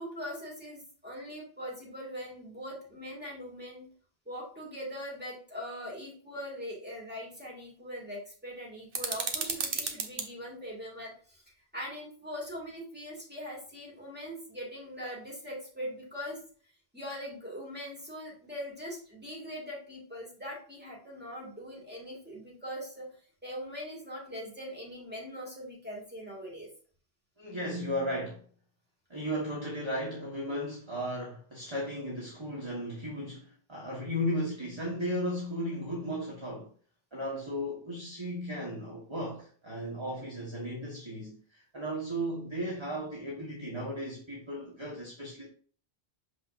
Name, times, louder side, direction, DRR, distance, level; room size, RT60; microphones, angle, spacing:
voice 1, 0.0-3.9 4.3-11.4 11.7-16.4 16.9-23.1 23.4-26.7, equal, 10° right, 2.4 m, -41 dB
sound 1, 8.9-10.3, right 4 dB, 65° right, 1.1 m, -33 dB
voice 2, 27.4-28.4 29.1-36.7 37.1-45.5, equal, 25° right, 1.5 m, -35 dB
6.4 x 5.6 x 2.6 m
omnidirectional pair, 1.0 m